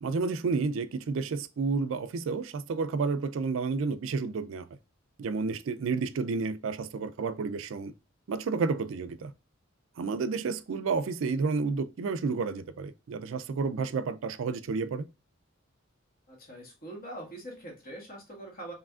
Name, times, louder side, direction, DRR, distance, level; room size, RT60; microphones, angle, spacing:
voice 1, 0.0-4.7 5.2-7.9 8.3-9.3 10.0-15.1, right 4 dB, 70° right, 0.4 m, -31 dB
voice 2, 16.3-18.7, right 1 dB, 45° left, 1.7 m, -43 dB
4.8 x 3.2 x 2.4 m
head